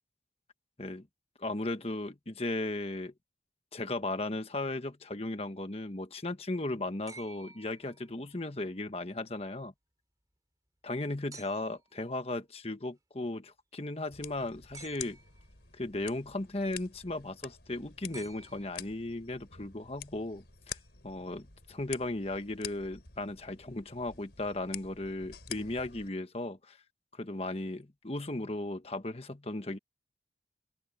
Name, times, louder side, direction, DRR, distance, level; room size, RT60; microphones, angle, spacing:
voice 1, 1.4-3.1 3.7-9.7 10.8-15.2 15.7-20.8 21.0-26.8 27.1-29.8, left 2 dB, 35° left, 1.3 m, -36 dB
sound 1, 7.1-8.4 11.3-11.9 14.7-15.5 18.1-19.2 20.8-20.9, right 3 dB, 20° right, 2.8 m, -52 dB
sound 2, 14.1-26.1, left 9 dB, 75° left, 3.7 m, -48 dB
open air
head